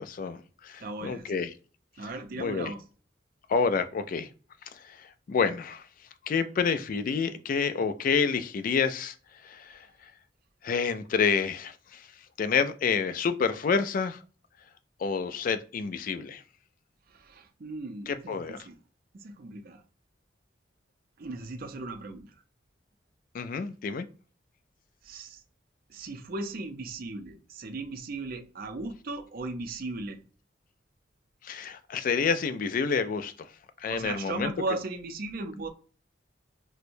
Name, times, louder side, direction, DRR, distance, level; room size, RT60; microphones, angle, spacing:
voice 1, 0.0-1.5 2.4-2.7 3.5-4.3 4.7-5.9 6.2-9.1 9.4-9.9 10.6-12.1 12.4-14.2 15.0-16.4 18.1-18.6 23.3-24.1 31.4-33.5 33.8-34.5, left 5 dB, 50° left, 0.3 m, -28 dB
voice 2, 0.8-1.3 2.0-2.8 17.1-18.8 19.1-19.8 21.2-22.3 23.5-23.6 25.0-25.4 25.9-30.2 33.9-35.7, right 2 dB, 50° right, 0.5 m, -37 dB
4.4 x 2.1 x 2.6 m
head